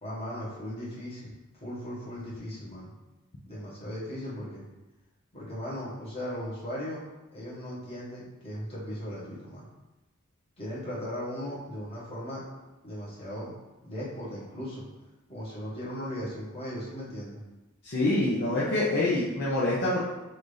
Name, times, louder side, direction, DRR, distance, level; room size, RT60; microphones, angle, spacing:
voice 1, 0.0-2.9 3.4-4.6 5.3-7.0 7.3-9.7 10.6-12.4 12.8-13.5 13.8-14.9 15.3-17.4, equal, 30° left, -8 dB, 1.5 m, -37 dB
voice 2, 17.8-20.0, left 2 dB, 55° left, -7 dB, 0.7 m, -26 dB
5.8 x 2.7 x 3.3 m, 1.1 s
head